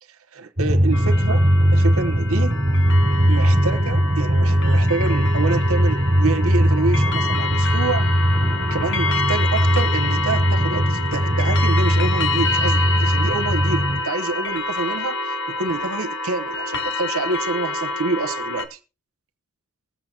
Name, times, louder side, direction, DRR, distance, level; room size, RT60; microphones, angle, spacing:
voice 1, 0.3-2.6 3.3-8.1 8.7-18.8, right 3 dB, 70° right, 1.0 m, -27 dB
Drum, 0.6-14.0, equal, 40° right, 2.3 m, -19 dB
sound 1, 0.9-18.7, left 3 dB, 55° left, 1.4 m, -27 dB
21.0 x 7.9 x 2.8 m
head